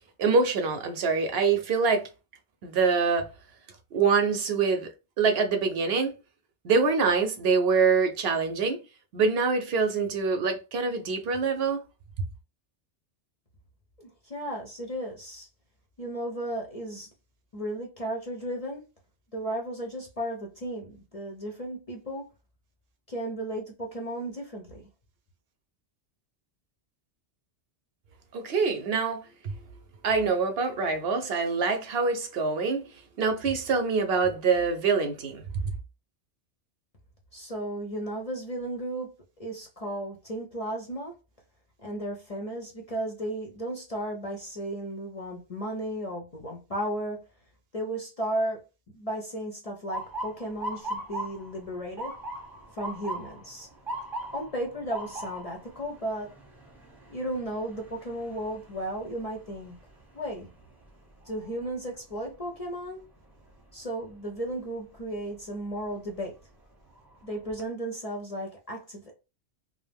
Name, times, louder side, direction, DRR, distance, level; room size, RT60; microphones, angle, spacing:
voice 1, 0.2-2.1 2.6-3.3 3.9-4.9 5.2-6.1 6.6-8.8 9.1-11.8 28.3-29.5 30.0-32.8 33.2-35.4, right 5 dB, 65° right, 0.7 m, -25 dB
voice 2, 14.0-15.5 16.0-17.1 17.5-18.8 19.3-22.3 23.1-24.8 37.3-39.1 39.4-41.1 41.8-47.2 47.7-48.6 48.9-52.2 52.7-53.7 54.3-56.3 57.1-59.8 60.1-60.5 61.3-63.1 63.7-66.4 67.2-69.1, right 1 dB, 45° left, 0.5 m, -34 dB
Motor vehicle (road) / Siren, 49.9-61.8 62.3-62.7 63.5-63.8 65.7-65.9 66.4-66.5 66.9-67.6, right 1 dB, ahead, 0.7 m, -40 dB
2.5 x 2.0 x 3.3 m
omnidirectional pair, 1.2 m